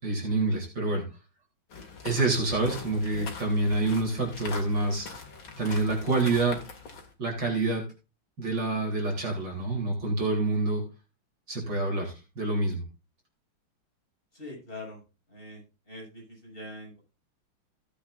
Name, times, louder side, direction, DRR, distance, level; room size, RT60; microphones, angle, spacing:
voice 1, 0.0-1.0 2.0-5.1 5.6-6.6 7.2-7.8 8.4-10.8 11.5-12.8, right 2 dB, 60° right, 0 dB, 4.2 m, -27 dB
sound 1, 1.7-7.1, left 4 dB, 70° left, 3.0 m, -42 dB
voice 2, 14.3-15.0 15.3-17.0, left 1 dB, 25° left, -2 dB, 7.0 m, -44 dB
16.5 x 8.4 x 2.5 m, 0.29 s
omnidirectional pair, 2.3 m